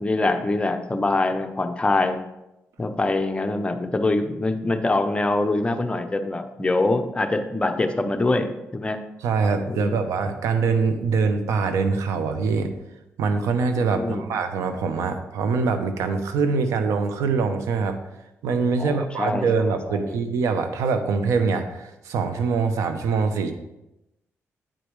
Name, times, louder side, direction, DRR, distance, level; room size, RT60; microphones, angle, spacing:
voice 1, 0.0-2.2 2.8-9.0 9.7-10.1 13.9-14.2 18.8-19.5 19.9-20.2, left 2 dB, 20° left, 7 dB, 0.6 m, -24 dB
voice 2, 9.2-12.7 13.2-18.0 18.4-23.5, right 4 dB, 90° right, 8 dB, 0.7 m, -23 dB
8.8 x 5.0 x 3.1 m, 0.92 s
cardioid pair, 90°, 5 cm